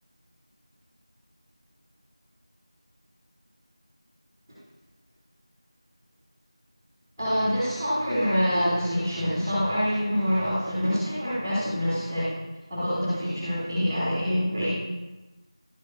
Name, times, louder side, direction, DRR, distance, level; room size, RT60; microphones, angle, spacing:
voice 1, 7.2-12.3 12.7-14.7, equal, 5° left, -22 dB, 2.3 m, -26 dB
11.5 x 7.8 x 2.7 m, 1.1 s
figure-of-eight pair, 175°, 3 cm